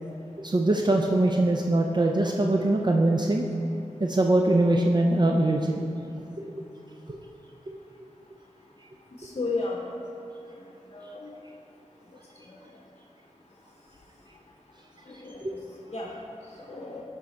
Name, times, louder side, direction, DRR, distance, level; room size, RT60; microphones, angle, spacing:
voice 1, 0.4-3.5 4.0-5.8 6.4-6.6 7.1-7.2 7.7-7.8 15.4-15.5, right 2 dB, 40° right, 1 dB, 0.4 m, -23 dB
voice 2, 9.2-9.8 10.9-11.3 12.5-12.6 15.2-15.6 15.9-16.1 16.6-17.0, left 3 dB, 50° left, -2 dB, 0.7 m, -33 dB
9.8 x 3.5 x 4.2 m, 2.7 s
wide cardioid pair, 50°, 12 cm